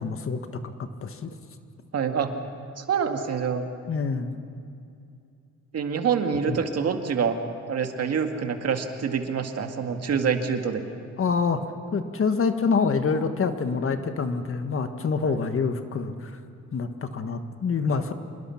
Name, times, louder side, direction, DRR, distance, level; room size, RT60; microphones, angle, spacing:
voice 1, 0.0-1.3 3.9-4.4 6.5-6.6 11.2-11.6 11.9-16.4 16.7-18.1, left 5 dB, 45° left, 8 dB, 1.5 m, -26 dB
voice 2, 1.9-2.3 2.8-3.7 5.7-7.4 7.7-10.8 15.3-15.4, right 6 dB, 55° right, 5 dB, 2.0 m, -26 dB
27.0 x 21.0 x 5.9 m, 2.5 s
cardioid pair, 90°, 30 cm